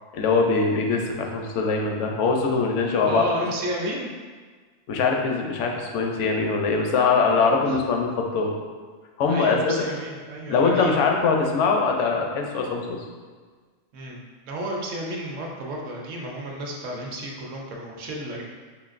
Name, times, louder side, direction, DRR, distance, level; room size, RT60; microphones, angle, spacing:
voice 1, 0.1-3.3 4.9-8.5 9.2-9.8 10.5-13.0, left 4 dB, 70° left, 2 dB, 0.8 m, -22 dB
voice 2, 2.8-4.1 7.7-7.8 9.3-11.0 13.9-18.4, right 1 dB, 70° right, -1 dB, 0.9 m, -32 dB
5.1 x 2.4 x 2.4 m, 1.5 s
omnidirectional pair, 1.4 m